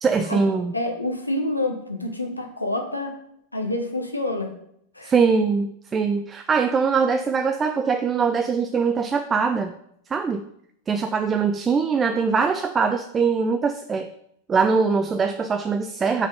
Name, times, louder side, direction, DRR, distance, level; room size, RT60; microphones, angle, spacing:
voice 1, 0.0-0.7 5.0-9.8 10.1-10.5 10.9-14.1 14.5-16.3, right 5 dB, 20° right, 8 dB, 0.4 m, -22 dB
voice 2, 0.7-3.2 3.5-4.5 4.9-5.1, left 2 dB, 85° left, 4 dB, 1.0 m, -27 dB
5.0 x 4.1 x 5.4 m, 0.73 s
figure-of-eight pair, 90°, 0 cm